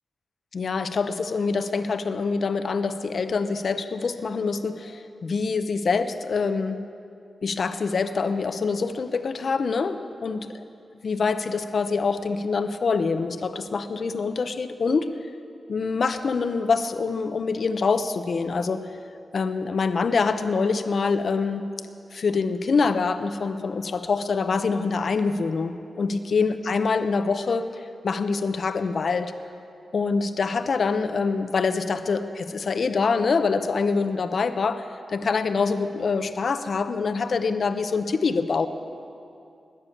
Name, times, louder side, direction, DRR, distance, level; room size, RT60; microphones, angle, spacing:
voice 1, 0.5-6.8 7.4-10.5 11.0-15.1 15.7-19.0 19.3-21.7 22.1-29.3 29.9-38.7, left 4 dB, 60° left, 10 dB, 0.7 m, -25 dB
20.0 x 6.9 x 8.5 m, 2.6 s
wide cardioid pair, 90°, 0 cm